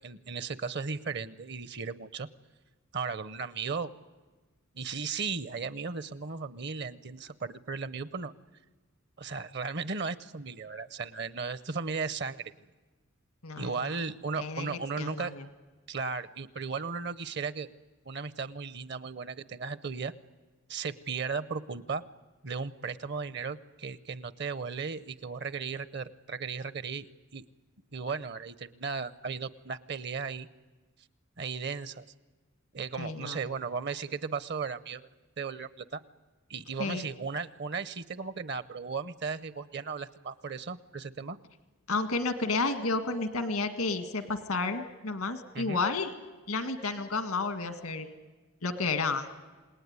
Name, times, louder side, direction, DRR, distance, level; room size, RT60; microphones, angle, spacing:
voice 1, 0.0-2.3 2.9-3.9 4.7-8.3 9.2-12.5 13.6-15.3 15.9-17.7 18.1-20.1 20.7-22.0 22.4-27.1 27.3-27.4 27.9-30.5 31.4-32.0 32.7-35.1 35.4-36.0 36.5-41.4 45.5-45.8, right 5 dB, 50° right, 16 dB, 0.8 m, -36 dB
voice 2, 13.4-14.0 14.4-15.5 33.0-33.5 36.8-37.1 41.9-46.1 46.5-48.1 48.6-49.3, left 3 dB, 90° left, 9 dB, 1.8 m, -31 dB
28.0 x 19.5 x 9.6 m, 1.3 s
head